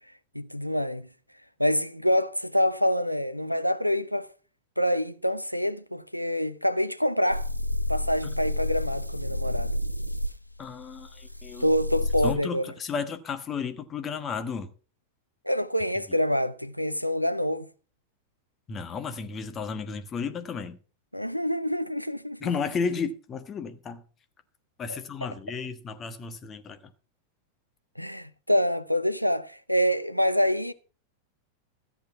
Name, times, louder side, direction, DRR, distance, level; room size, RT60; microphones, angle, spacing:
voice 1, 0.3-1.1 1.6-4.3 4.8-7.4 7.9-9.8 11.6-12.7 15.4-17.7 21.1-22.5 28.0-30.7, equal, 90° left, 0.7 m, -26 dB
sound 1, 7.3-12.3, left 1 dB, 90° right, 0.6 m, -30 dB
voice 2, 10.6-11.7 12.2-14.7 18.7-20.8 22.4-24.0 24.8-26.8, left 5 dB, 25° left, 1.4 m, -33 dB
14.0 x 7.9 x 5.8 m
figure-of-eight pair, 90°, 0 cm